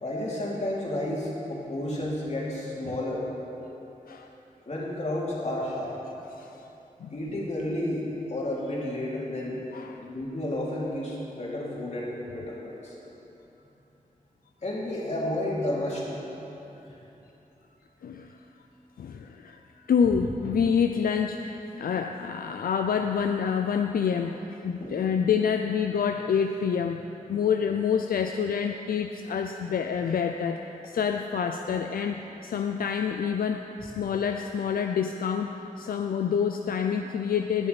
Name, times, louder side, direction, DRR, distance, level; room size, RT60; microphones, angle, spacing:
voice 1, 0.0-3.3 4.7-6.0 7.1-9.6 10.0-13.0 14.6-16.2 16.8-17.0 20.0-20.2 24.8-24.9, left 1 dB, 50° left, -5 dB, 2.9 m, -31 dB
voice 2, 9.7-10.1 18.0-18.4 19.0-19.6 19.9-27.0 27.3-37.7, left 7 dB, 85° left, 5 dB, 0.4 m, -27 dB
19.5 x 6.7 x 4.0 m, 3.0 s
cardioid pair, 65°, 15 cm